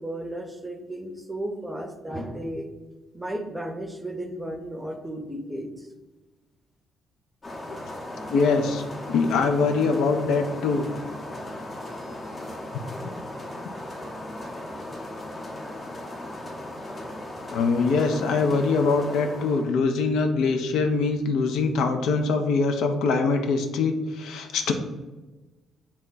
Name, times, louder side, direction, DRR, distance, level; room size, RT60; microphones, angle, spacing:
voice 1, 0.0-2.7 3.1-5.9, right 1 dB, 10° right, 5 dB, 0.6 m, -34 dB
sound 1, 7.4-19.7, left 1 dB, 30° left, 0.6 m, -37 dB
voice 2, 8.3-10.9 17.5-24.7, left 4 dB, 65° left, 5 dB, 0.3 m, -23 dB
3.4 x 2.1 x 3.9 m, 1.2 s
hypercardioid pair, 45°, 0 cm